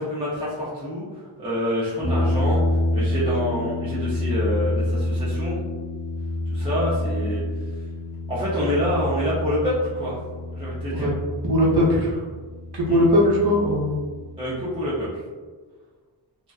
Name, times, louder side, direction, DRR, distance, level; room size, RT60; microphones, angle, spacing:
voice 1, 0.0-2.6 2.9-5.6 6.5-7.4 8.3-10.2 10.5-11.1 12.9-13.0 14.4-15.1, equal, 15° right, -9 dB, 0.4 m, -27 dB
sound 1, 2.0-15.1, left 1 dB, 45° left, 0.5 m, -28 dB
voice 2, 11.5-12.3 12.7-14.0, equal, 60° right, -5 dB, 0.7 m, -19 dB
2.5 x 2.2 x 2.3 m, 1.4 s
wide cardioid pair, 150°, 45 cm